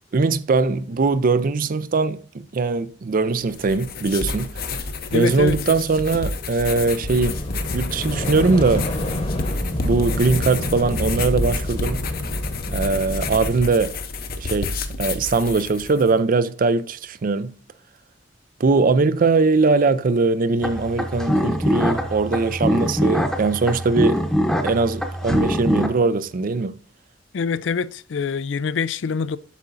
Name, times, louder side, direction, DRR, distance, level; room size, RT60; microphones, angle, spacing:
voice 1, 0.1-4.5 5.1-7.4 7.7-8.9 9.8-12.0 12.7-14.0 14.4-14.7 15.0-17.6 18.6-24.2 24.6-26.8, right 3 dB, 50° right, 0.5 m, -21 dB
sound 1, 3.4-16.1, left 3 dB, 55° left, 0.8 m, -30 dB
voice 2, 5.1-5.6 27.3-29.4, left 5 dB, 75° left, 0.4 m, -24 dB
sound 2, 6.9-13.9, left 1 dB, 35° left, 1.1 m, -27 dB
sound 3, 20.6-25.9, equal, ahead, 0.8 m, -23 dB
8.3 x 6.7 x 2.6 m
head